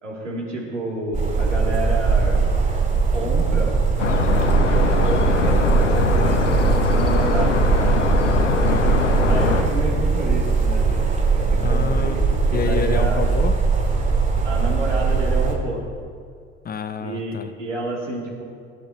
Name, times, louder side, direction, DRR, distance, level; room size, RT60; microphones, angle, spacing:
voice 1, 0.0-2.4 3.1-3.8 4.1-8.0 9.3-11.1 11.3-12.2 12.5-13.2 14.4-15.8 17.0-18.4, right 1 dB, 85° right, -3 dB, 2.6 m, -29 dB
sound 1, 1.1-15.5, right 4 dB, 20° right, 3.3 m, -20 dB
sound 2, 4.0-9.6, left 4 dB, 85° left, 0.9 m, -22 dB
voice 2, 8.6-9.1 11.6-12.2 12.5-13.5 16.6-17.5, left 6 dB, 25° left, 11 dB, 0.7 m, -28 dB
21.5 x 12.0 x 2.8 m, 2.2 s
figure-of-eight pair, 60°, 35 cm